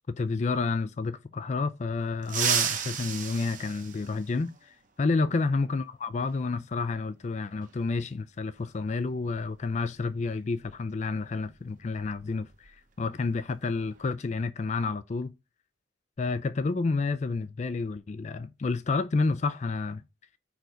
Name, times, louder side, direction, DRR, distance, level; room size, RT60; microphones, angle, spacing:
voice 1, 0.1-15.3 16.2-20.0, left 3 dB, 40° left, 0.4 m, -30 dB
sound 1, 2.2-4.6 6.3-6.4 7.6-7.7 9.3-9.5 9.9-10.1 10.6-12.7 13.0-13.3 13.7-14.1, right 8 dB, 45° right, 1.0 m, -33 dB
4.7 x 4.6 x 5.0 m
head